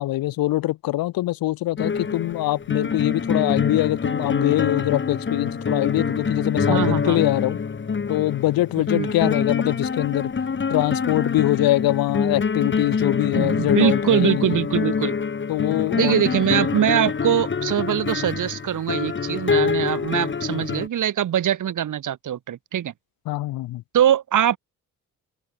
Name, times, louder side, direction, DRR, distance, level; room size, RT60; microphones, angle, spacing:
voice 1, 0.0-7.6 8.1-10.3 10.7-14.6 15.5-16.3 23.3-23.8, left 16 dB, 85° left, 6.1 m, -23 dB
sound 1, 1.8-20.9, left 5 dB, 35° left, 1.9 m, -25 dB
voice 2, 6.7-7.2 8.9-9.1 13.4-15.1 15.9-22.9 23.9-24.6, right 10 dB, 60° right, 2.3 m, -22 dB
open air
supercardioid pair, 70°, 34 cm